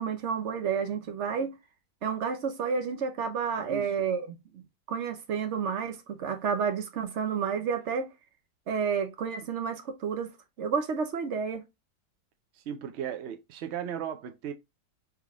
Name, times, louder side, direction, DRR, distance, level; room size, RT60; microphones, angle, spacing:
voice 1, 0.0-1.5 2.0-4.6 4.9-8.1 8.7-10.3 10.6-11.6, right 6 dB, 55° right, 0.9 m, -30 dB
voice 2, 12.5-14.5, right 9 dB, 80° right, 0.6 m, -36 dB
3.6 x 3.2 x 3.5 m
omnidirectional pair, 1.8 m